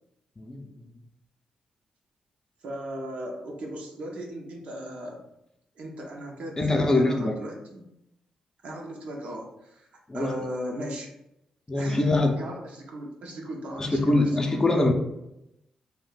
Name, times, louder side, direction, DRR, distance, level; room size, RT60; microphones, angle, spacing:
voice 1, 0.4-0.7 6.6-7.4 10.1-10.3 11.7-12.3 13.8-14.9, left 2 dB, 25° left, 2 dB, 0.5 m, -23 dB
voice 2, 2.6-5.2 5.8-7.9 8.6-9.9 10.1-11.1 11.7-14.7, equal, 75° right, -1 dB, 0.6 m, -37 dB
2.5 x 2.2 x 3.8 m, 0.86 s
supercardioid pair, 60°, 2 cm